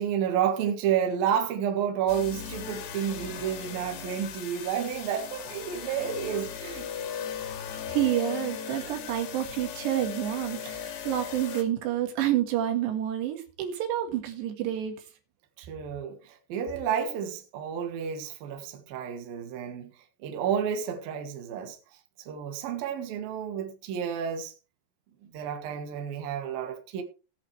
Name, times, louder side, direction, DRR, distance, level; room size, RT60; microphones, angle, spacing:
voice 1, 0.0-6.9 15.6-19.9 20.2-21.8 22.3-24.5 25.2-27.0, right 8 dB, 65° right, 3.2 m, -30 dB
sound 1, 2.1-11.6, left 8 dB, 80° left, 3.9 m, -37 dB
voice 2, 7.7-15.0, right 12 dB, 85° right, 3.9 m, -29 dB
18.5 x 8.4 x 3.2 m
omnidirectional pair, 4.9 m